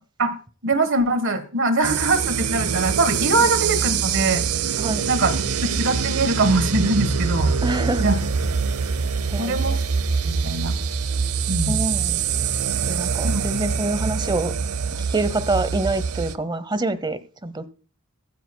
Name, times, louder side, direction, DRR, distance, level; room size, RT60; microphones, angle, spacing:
voice 1, 0.6-4.5 5.1-5.3 5.6-7.5 8.0-8.2 9.4-9.8 10.2-10.7 11.5-11.7 13.2-13.4, right 2 dB, 60° right, 11 dB, 1.3 m, -22 dB
sound 1, 1.8-16.4, right 6 dB, 80° right, 0.7 m, -24 dB
voice 2, 7.6-8.2 9.3-9.8 11.7-12.2 12.9-14.5 14.9-17.7, right 2 dB, 20° right, 15 dB, 0.8 m, -26 dB
23.5 x 9.2 x 2.2 m, 0.37 s
head